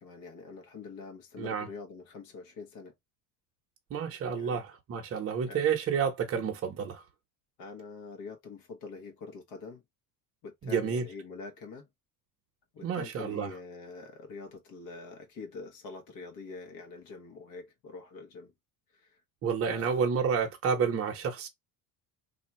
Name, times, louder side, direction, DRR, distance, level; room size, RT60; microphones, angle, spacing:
voice 1, 0.0-2.9 4.4-4.6 5.5-5.6 7.6-9.8 10.4-11.9 12.7-18.5 18.9-19.2 19.7-20.1, left 4 dB, 55° left, 1.1 m, -45 dB
voice 2, 1.4-1.7 3.9-7.0 10.6-11.1 12.8-13.5 19.4-21.5, right 6 dB, 30° right, 0.9 m, -30 dB
2.8 x 2.3 x 4.2 m
cardioid pair, 165°, 43 cm